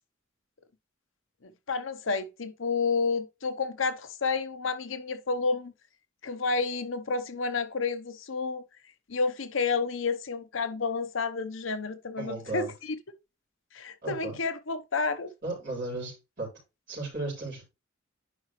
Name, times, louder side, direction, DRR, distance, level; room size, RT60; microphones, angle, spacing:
voice 1, 1.4-5.7 6.2-8.6 9.1-12.9 13.7-15.3, left 4 dB, 80° left, 0.9 m, -30 dB
voice 2, 12.2-12.7 14.0-14.4 15.4-16.5 16.9-17.6, right 2 dB, 50° right, 4.4 m, -35 dB
10.0 x 4.9 x 3.1 m
head